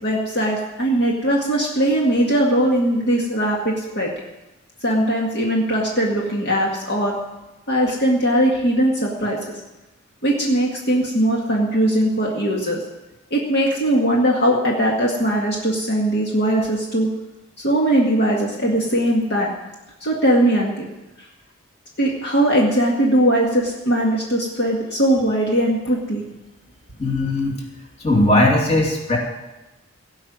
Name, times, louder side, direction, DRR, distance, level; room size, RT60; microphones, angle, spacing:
voice 1, 0.0-4.1 4.8-7.2 7.7-9.5 10.2-12.8 13.3-17.1 17.6-19.5 20.0-20.9 22.0-26.2, right 1 dB, 50° left, -2 dB, 2.0 m, -20 dB
voice 2, 27.0-27.5 28.0-29.2, left 1 dB, 30° left, -1 dB, 2.6 m, -18 dB
17.5 x 5.8 x 9.4 m, 1.0 s
head